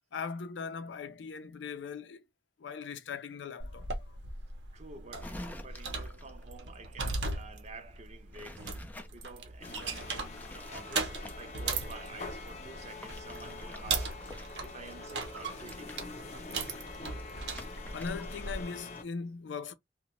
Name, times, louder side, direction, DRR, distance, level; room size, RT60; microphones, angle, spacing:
voice 1, 0.1-2.2 2.6-4.2 13.3-13.8 17.9-19.7, left 5 dB, 80° left, 0.5 m, -40 dB
sound 1, 3.6-18.6, right 3 dB, 70° right, 0.8 m, -39 dB
voice 2, 4.7-8.8 9.1-14.2 14.6-16.0, right 3 dB, 40° right, 0.6 m, -49 dB
sound 2, 5.2-6.4 8.3-9.1 9.6-12.0 13.0-18.5 18.7-19.0, left 1 dB, 10° left, 0.3 m, -50 dB
sound 3, 9.6-19.0, left 3 dB, 40° left, 0.7 m, -45 dB
2.8 x 2.1 x 2.9 m
head